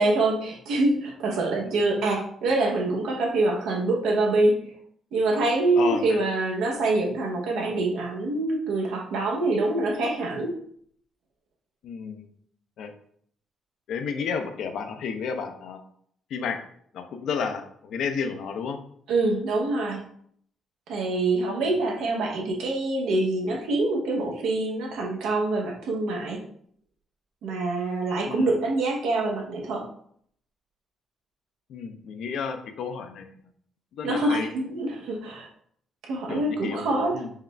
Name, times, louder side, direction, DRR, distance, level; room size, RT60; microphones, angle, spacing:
voice 1, 0.0-4.7 5.1-10.5 19.1-20.0 20.9-26.4 27.4-29.9 34.0-35.5 36.1-37.2, right 2 dB, 85° right, 0 dB, 0.8 m, -25 dB
voice 2, 5.8-6.2 11.8-12.3 12.8-12.9 13.9-15.8 16.3-16.6 16.9-18.8 21.7-21.8 28.2-28.5 31.7-33.3 33.9-34.5 36.3-37.3, left 6 dB, 75° left, 6 dB, 0.5 m, -31 dB
4.6 x 2.3 x 3.2 m, 0.64 s
cardioid pair, 90°, 0 cm